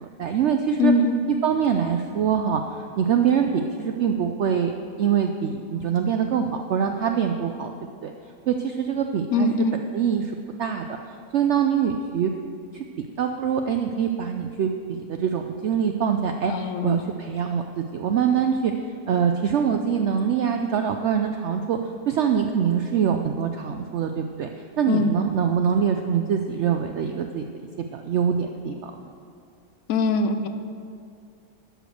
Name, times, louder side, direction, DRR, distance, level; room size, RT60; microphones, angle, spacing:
voice 1, 0.0-0.9 1.4-4.7 5.0-8.1 8.5-9.7 9.9-12.3 12.7-12.8 13.2-18.7 19.1-21.8 22.1-24.5 24.8-27.4 27.9-29.1, right 7 dB, 90° right, 5 dB, 0.6 m, -24 dB
voice 2, 0.8-1.2 9.3-9.7 16.5-17.0 24.9-25.1 29.9-30.5, left 3 dB, 65° left, 8 dB, 1.0 m, -22 dB
12.0 x 5.1 x 6.4 m, 2.3 s
omnidirectional pair, 1.7 m